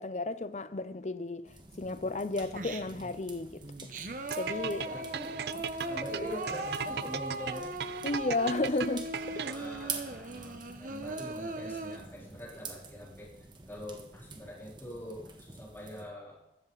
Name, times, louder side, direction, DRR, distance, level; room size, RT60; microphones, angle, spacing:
voice 1, 0.0-1.5 1.8-3.9 4.4-5.0 5.5-5.6 8.0-9.5, left 2 dB, 40° left, 0.6 m, -33 dB
sound 1, 1.4-16.0, right 4 dB, 25° right, 1.6 m, -48 dB
Singing, 2.5-3.1 3.6-12.0, right 2 dB, 45° right, 1.2 m, -39 dB
sound 2, 4.3-9.8, right 8 dB, 65° right, 0.4 m, -37 dB
voice 2, 4.8-5.4 5.8-7.7 9.4-13.3 13.7-16.4, equal, 10° left, 4.0 m, -43 dB
16.0 x 13.5 x 4.1 m
head